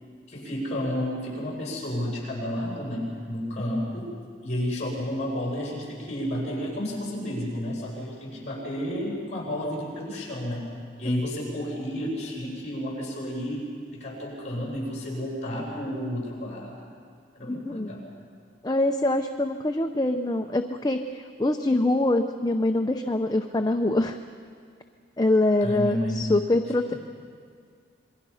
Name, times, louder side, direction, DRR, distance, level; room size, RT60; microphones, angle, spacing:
voice 1, 0.3-4.1 4.4-10.7 11.0-16.8 17.3-18.1 25.6-26.3 26.9-27.0, equal, 40° left, -3 dB, 7.2 m, -31 dB
voice 2, 17.5-17.9 18.6-24.2 25.2-26.9, left 2 dB, 20° left, 5 dB, 0.6 m, -24 dB
27.5 x 22.5 x 5.7 m, 2.1 s
head